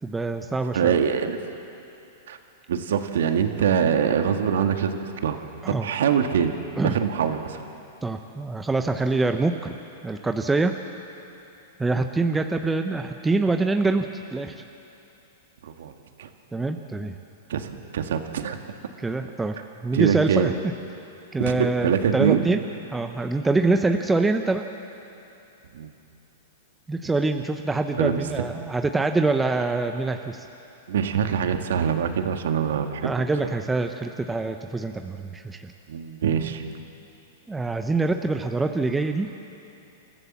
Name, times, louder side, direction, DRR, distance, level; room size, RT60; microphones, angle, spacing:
voice 1, 0.0-0.9 5.6-5.9 6.8-7.0 8.0-9.8 10.0-10.7 11.8-14.1 14.3-14.6 16.5-17.1 19.0-19.6 19.8-20.5 21.3-22.6 22.9-24.7 26.9-30.5 33.0-35.7 37.5-39.3, right 3 dB, 10° right, 5 dB, 0.9 m, -25 dB
voice 2, 0.7-1.4 2.3-2.4 2.7-5.4 5.7-6.5 6.8-7.6 15.6-15.9 16.2-16.3 17.5-18.6 19.9-20.5 21.4-22.4 25.7-25.9 28.0-28.4 30.9-33.2 35.9-36.6, right 7 dB, 75° right, 6 dB, 1.6 m, -24 dB
29.0 x 14.5 x 7.4 m, 2.8 s
hypercardioid pair, 115°, 0 cm